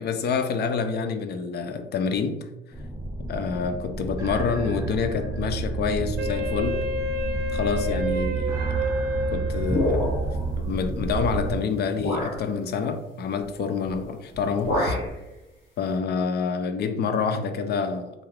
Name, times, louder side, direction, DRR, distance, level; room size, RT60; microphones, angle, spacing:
voice 1, 0.0-2.5 3.2-6.9 7.5-8.8 9.3-15.0 15.8-18.1, left 5 dB, 55° left, 0.4 m, -27 dB
sound 1, 2.7-11.6, right 3 dB, 15° right, 0.4 m, -30 dB
Wind instrument woodwind instrument, 6.2-10.4, left 1 dB, 75° right, 0.6 m, -30 dB
sound 2, 9.6-10.4 11.3-11.4 12.0-12.4 13.8-14.1 14.3-15.1, left 1 dB, 75° left, 1.1 m, -27 dB
2.4 x 2.3 x 3.2 m
cardioid pair, 90°, 20 cm